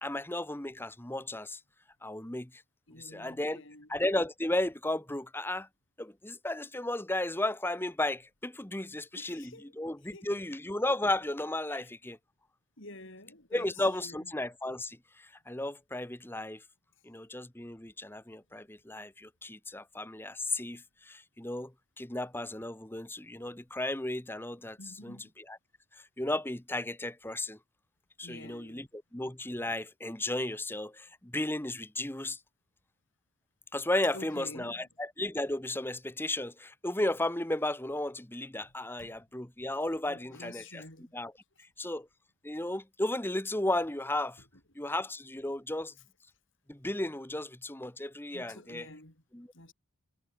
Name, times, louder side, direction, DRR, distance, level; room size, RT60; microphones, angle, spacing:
voice 1, 0.0-1.6 2.0-2.6 3.0-3.6 3.9-5.7 6.0-12.2 13.5-16.6 17.0-24.8 25.0-25.6 25.9-27.6 28.2-28.9 29.1-32.4 33.7-41.3 41.8-42.1 42.4-44.4 44.7-45.9 46.7-48.9 49.3-49.5, left 1 dB, 10° left, 1.1 m, -34 dB
voice 2, 2.9-3.9 8.8-8.9 9.2-9.7 10.1-10.3 11.7-11.9 12.8-13.7 14.0-14.3 24.8-25.3 28.2-28.8 34.1-34.9 38.6-38.7 39.0-39.2 40.1-41.1 48.3-49.2 49.5-49.7, left 1 dB, 55° left, 5.7 m, -49 dB
head